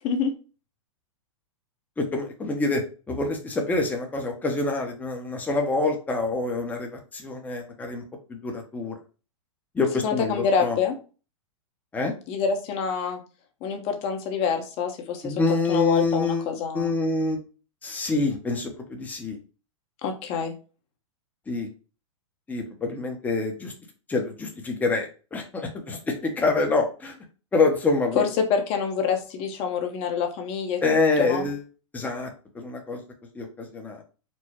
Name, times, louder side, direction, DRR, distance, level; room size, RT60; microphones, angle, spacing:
voice 1, 2.0-2.8 3.1-8.0 8.3-9.0 9.7-10.8 11.9-12.1 15.2-17.4 17.8-19.4 21.5-21.7 22.5-23.7 24.1-27.1 27.5-28.3 30.8-31.6 31.9-32.3 32.5-33.0 33.3-34.0, left 3 dB, 10° left, 3 dB, 0.7 m, -26 dB
voice 2, 10.0-10.9 12.3-13.2 13.6-16.9 20.0-20.5 28.2-31.5, left 6 dB, 35° left, 4 dB, 1.0 m, -26 dB
4.5 x 2.1 x 4.4 m, 0.35 s
hypercardioid pair, 135°, 17 cm